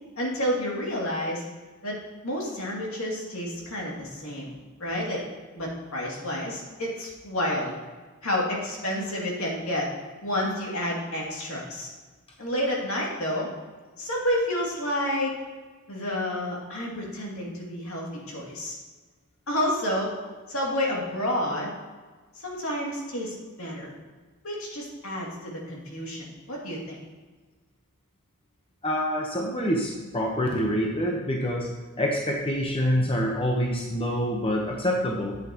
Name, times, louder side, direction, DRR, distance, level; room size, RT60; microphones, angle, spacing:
voice 1, 0.2-1.4 1.8-2.0 2.2-4.5 4.8-5.2 5.5-7.8 8.2-9.9 10.2-11.9 12.4-13.5 14.0-15.4 15.9-18.8 19.5-20.1 20.5-21.7 22.3-23.9 24.4-27.0, left 1 dB, 70° left, -3 dB, 2.5 m, -30 dB
voice 2, 28.8-31.7 32.0-35.4, equal, 25° left, -1 dB, 0.9 m, -26 dB
11.0 x 8.3 x 2.9 m, 1.3 s
head